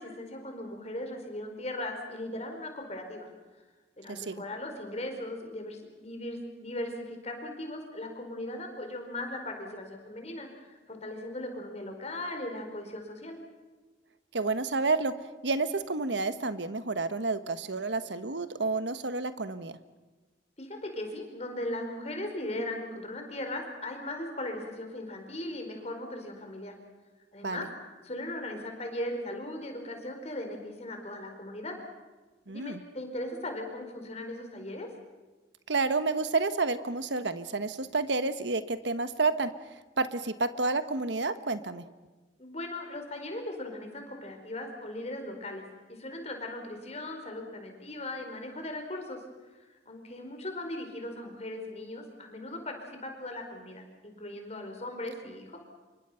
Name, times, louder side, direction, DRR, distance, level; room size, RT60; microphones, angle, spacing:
voice 1, 0.0-3.3 4.0-13.4 20.6-26.7 27.3-27.7 28.0-31.7 32.5-34.9 42.4-45.6 45.9-49.2 49.9-55.6, left 1 dB, 35° left, 4 dB, 4.8 m, -38 dB
voice 2, 4.1-4.4 14.3-15.1 15.4-19.8 27.4-27.7 32.5-32.8 35.7-39.5 40.0-41.8, right 3 dB, 80° right, 11 dB, 1.3 m, -30 dB
27.5 x 24.5 x 5.8 m, 1.3 s
head